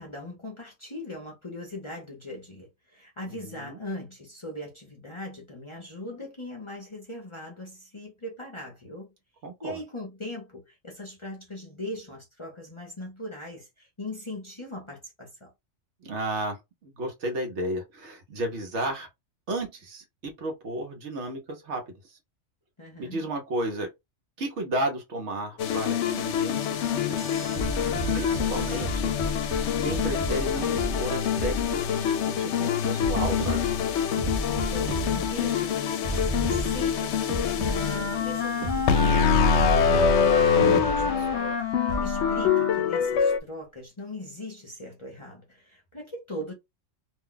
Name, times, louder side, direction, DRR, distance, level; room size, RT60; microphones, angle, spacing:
voice 1, 0.0-9.1 9.6-15.5 22.8-23.2 34.7-37.6 37.9-46.5, left 1 dB, 30° left, 0.7 m, -40 dB
voice 2, 3.3-3.8 9.4-9.8 16.0-19.1 19.5-22.2 23.0-23.9 24.4-33.7, right 1 dB, 70° right, 1.1 m, -33 dB
sound 1, 25.6-43.4, left 7 dB, 70° left, 0.8 m, -25 dB
sound 2, 27.2-32.1 33.0-35.7 36.0-38.3 38.6-41.4 41.9-42.5, right 1 dB, 50° right, 0.8 m, -33 dB
Wind instrument woodwind instrument, 37.6-43.0, left 5 dB, 45° left, 1.0 m, -29 dB
2.6 x 2.2 x 3.7 m
omnidirectional pair, 1.3 m